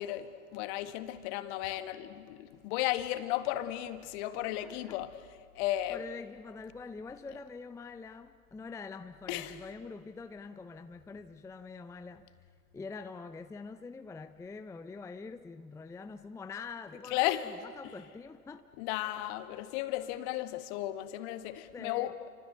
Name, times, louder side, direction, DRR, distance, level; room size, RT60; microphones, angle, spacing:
voice 1, 0.0-5.1 5.6-6.0 9.3-9.6 17.1-17.5 17.8-17.9 18.8-22.1, left 14 dB, 50° left, 9 dB, 1.9 m, -34 dB
voice 2, 4.6-5.0 5.9-12.3 12.7-18.7 21.7-22.1, left 4 dB, 5° left, 9 dB, 0.6 m, -45 dB
29.0 x 25.5 x 8.0 m, 2.1 s
figure-of-eight pair, 85°, 44 cm